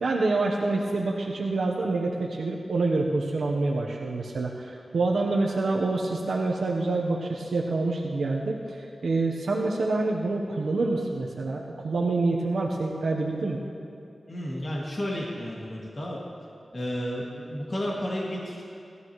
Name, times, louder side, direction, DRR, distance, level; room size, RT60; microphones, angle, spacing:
voice 1, 0.0-13.6, right 3 dB, 90° right, -2 dB, 1.1 m, -27 dB
voice 2, 14.3-16.2 16.7-18.6, equal, 40° left, -5 dB, 2.3 m, -32 dB
19.5 x 14.0 x 3.2 m, 2.6 s
wide cardioid pair, 85°, 0 cm